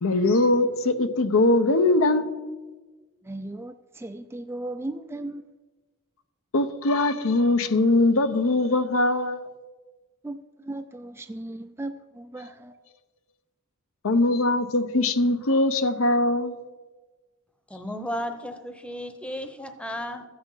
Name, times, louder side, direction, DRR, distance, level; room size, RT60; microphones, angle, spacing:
voice 1, 0.0-2.4 6.5-9.4 14.0-16.6, left 2 dB, 65° left, 10 dB, 0.8 m, -21 dB
voice 2, 3.2-5.5 10.2-12.8, right 2 dB, 10° right, 8 dB, 0.3 m, -37 dB
voice 3, 17.7-20.2, equal, 5° left, 8 dB, 0.9 m, -34 dB
14.0 x 8.6 x 5.7 m, 1.3 s
head